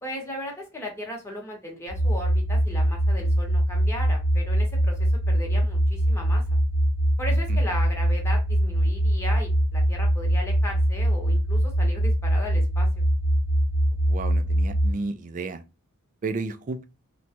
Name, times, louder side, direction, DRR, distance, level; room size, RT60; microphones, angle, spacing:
voice 1, 0.0-6.4 7.2-13.0, left 1 dB, 10° left, 0.9 m, -36 dB
sound 1, 1.9-14.9, right 1 dB, 90° left, 0.9 m, -23 dB
voice 2, 14.1-15.6 16.2-16.9, right 3 dB, 35° right, 0.3 m, -32 dB
2.9 x 2.2 x 2.8 m
head